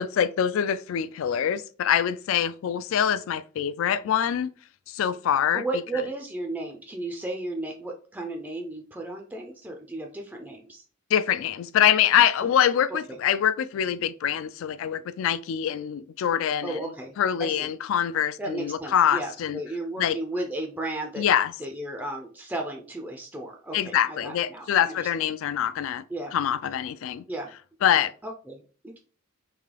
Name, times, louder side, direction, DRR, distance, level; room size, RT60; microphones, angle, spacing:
voice 1, 0.0-4.5 4.9-5.6 11.1-19.6 20.0-20.2 21.2-21.5 23.7-26.0 26.3-27.2 27.8-28.1, left 9 dB, 65° left, 0.3 m, -24 dB
voice 2, 5.5-10.8 16.6-17.1 17.4-17.7 18.4-21.2 21.6-25.1 26.1-26.4 27.3-27.5 28.2-29.0, right 2 dB, 5° right, 0.4 m, -34 dB
3.7 x 2.7 x 3.2 m
head